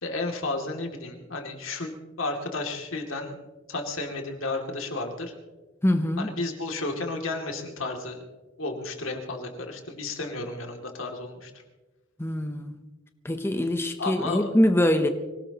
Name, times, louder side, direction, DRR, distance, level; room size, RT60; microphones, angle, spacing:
voice 1, 0.0-1.9 2.2-3.4 3.7-5.3 6.2-8.2 8.6-11.5 14.0-14.5, left 2 dB, 75° left, 3 dB, 2.6 m, -32 dB
voice 2, 5.8-6.3 12.2-12.8 13.2-15.1, left 1 dB, 10° left, 7 dB, 0.8 m, -24 dB
24.5 x 17.5 x 3.0 m, 1.2 s
head